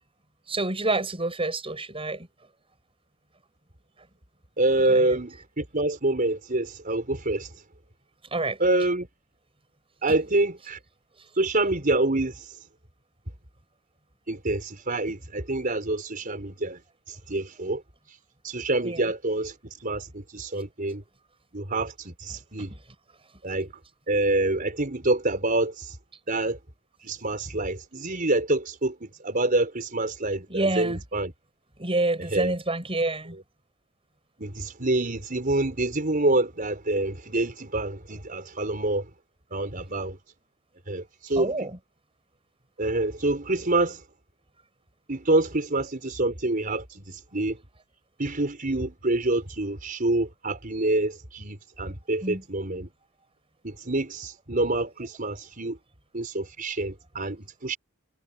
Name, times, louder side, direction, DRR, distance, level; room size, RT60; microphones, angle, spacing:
voice 1, 0.5-2.3 4.9-5.2 8.3-8.6 18.8-19.0 22.6-22.8 30.5-31.0 31.8-33.3 41.4-41.7 52.2-52.4, right 2 dB, 30° right, 7.9 m, -28 dB
voice 2, 4.6-7.6 8.6-9.1 10.0-10.8 11.3-12.7 14.3-16.8 17.1-17.8 18.1-18.2 18.4-21.0 21.5-22.7 23.4-23.7 24.1-26.0 26.3-26.6 27.0-31.3 32.3-32.5 34.4-39.1 39.5-40.2 40.9-41.7 42.8-44.0 45.1-47.6 48.2-52.9 53.6-55.8 56.1-57.8, right 2 dB, 45° right, 5.0 m, -27 dB
head